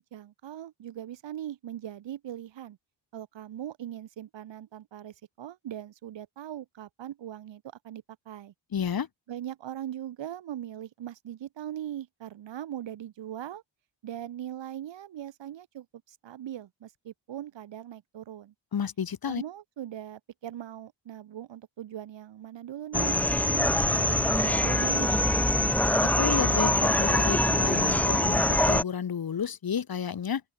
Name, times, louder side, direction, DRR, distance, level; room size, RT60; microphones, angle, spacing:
voice 1, 0.0-2.8 3.1-8.5 9.3-13.6 14.0-18.5 19.3-25.2, right 11 dB, 70° right, 2.1 m, -40 dB
voice 2, 8.7-9.1 18.7-19.4 26.0-30.4, left 7 dB, 50° left, 2.9 m, -31 dB
sound 1, 22.9-28.8, left 1 dB, 5° left, 0.6 m, -24 dB
open air
cardioid pair, 95°, 45 cm